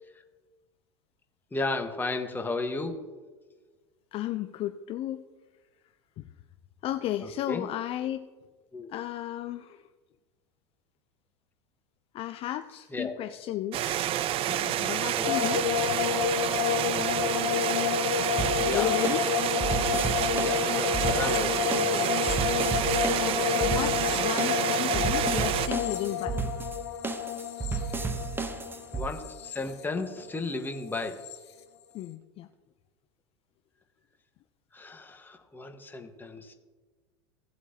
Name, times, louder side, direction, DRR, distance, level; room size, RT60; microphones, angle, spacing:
voice 1, 1.5-3.0 7.2-7.7 8.7-8.9 12.9-13.2 15.2-15.5 16.9-17.2 18.7-18.9 20.4-22.1 28.9-31.2 34.7-36.5, left 3 dB, 15° left, 5 dB, 1.4 m, -34 dB
voice 2, 4.1-5.2 6.2-6.3 6.8-8.3 8.9-9.8 12.1-16.0 16.3-16.4 18.7-19.2 23.2-26.5 31.9-32.5, left 13 dB, 40° left, 10 dB, 0.5 m, -34 dB
sound 1, 13.7-25.7, right 12 dB, 40° right, 0.5 m, -29 dB
sound 2, 15.2-30.5 30.7-31.4, left 10 dB, 75° left, 1.2 m, -30 dB
sound 3, 18.4-29.1, right 5 dB, 15° right, 0.9 m, -33 dB
17.0 x 7.9 x 2.9 m, 1.3 s
hypercardioid pair, 85°, 14 cm